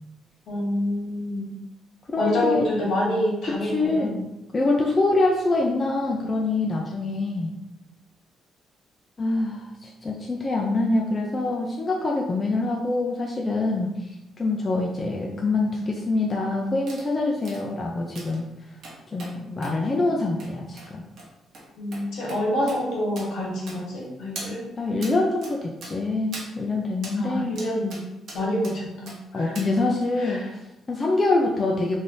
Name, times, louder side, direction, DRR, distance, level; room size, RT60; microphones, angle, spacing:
voice 1, 0.5-1.5 2.2-4.1 21.8-24.7 27.1-28.0 28.3-29.6 30.2-30.5, left 1 dB, 70° left, -4 dB, 1.3 m, -27 dB
voice 2, 2.1-2.6 3.6-4.3 4.5-7.5 9.2-18.4 19.1-21.0 24.8-27.6 29.3-32.0, left 2 dB, 30° left, -1 dB, 0.4 m, -25 dB
sound 1, 16.9-17.1 17.4-17.6 18.1-18.4 18.8-19.3 19.6-19.8 20.4-20.5 20.8-20.9 21.2-21.3 21.5-21.6 21.9-22.0 22.3-22.4 22.7-22.8 23.2-23.3 23.7-24.0 24.4-24.5 25.0-25.1 25.4-25.5 25.8-25.9 26.3-26.5 27.0-27.2 27.6-28.0 28.3-28.7 29.1-29.2 29.5-29.7 30.0-30.1, right 2 dB, 65° right, 0.9 m, -40 dB
3.2 x 2.7 x 2.6 m, 0.93 s
cardioid pair, 90°, 0 cm